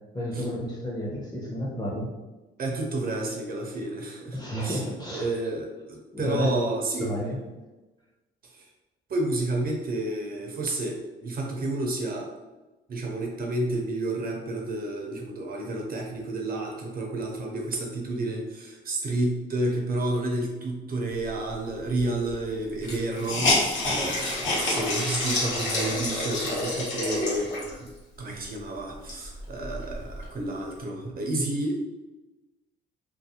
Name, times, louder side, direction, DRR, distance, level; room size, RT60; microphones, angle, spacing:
voice 1, 0.1-2.1 4.3-5.3 6.1-6.5 7.0-7.4, equal, 20° left, -3 dB, 0.8 m, -31 dB
voice 2, 2.6-4.8 5.1-7.1 8.4-8.6 9.1-12.3 12.9-27.9 28.2-31.8, right 2 dB, 50° right, 1 dB, 0.5 m, -30 dB
Hiss, 22.0-22.1 22.3-22.4 22.8-27.9 28.4-28.5 28.9-30.3, left 2 dB, 70° left, 1.0 m, -28 dB
2.4 x 2.0 x 2.7 m, 1.1 s
cardioid pair, 90°, 20 cm